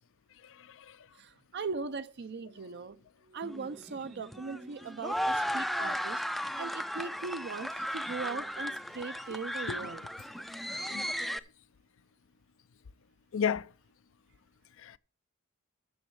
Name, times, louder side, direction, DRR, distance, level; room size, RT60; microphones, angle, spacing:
voice 1, 0.4-1.0 9.7-9.8 10.9-11.0 13.3-13.7 14.8-15.0, left 7 dB, 65° left, 0.4 m, -33 dB
voice 2, 1.1-3.0 3.3-6.2 6.6-10.0, right 4 dB, 50° right, 0.5 m, -39 dB
Glass, 2.3-6.9 7.2-7.9 8.3-8.8 9.4-9.7, right 4 dB, 85° right, 6.1 m, -62 dB
sound 1, 3.4-11.4, equal, ahead, 0.4 m, -35 dB
12.5 x 7.2 x 4.6 m
head